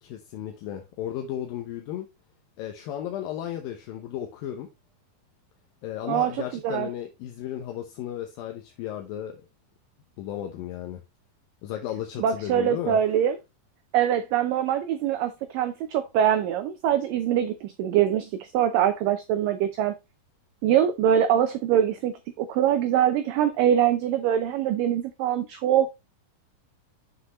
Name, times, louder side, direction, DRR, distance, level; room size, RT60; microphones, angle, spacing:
voice 1, 0.0-2.1 2.6-4.7 5.8-9.4 10.2-11.0 11.6-13.0, left 11 dB, 75° left, 2.4 m, -34 dB
voice 2, 6.1-6.9 12.2-13.4 13.9-19.9 20.6-26.0, right 10 dB, 85° right, 1.9 m, -23 dB
7.9 x 6.1 x 3.0 m
omnidirectional pair, 4.7 m